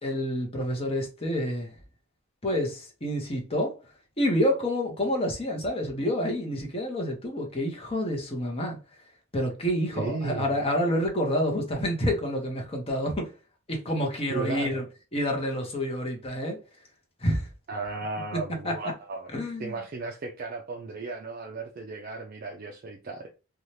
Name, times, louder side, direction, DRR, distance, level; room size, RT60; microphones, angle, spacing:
voice 1, 0.0-1.7 2.4-3.8 4.2-8.8 9.3-13.3 13.7-14.8 15.1-16.6 17.2-17.5 18.3-18.8 19.3-19.8, equal, 30° left, 0.8 m, -28 dB
voice 2, 9.9-10.6 14.3-14.8 17.7-19.3 19.6-23.4, right 3 dB, 45° right, 0.4 m, -35 dB
2.7 x 2.3 x 3.1 m
head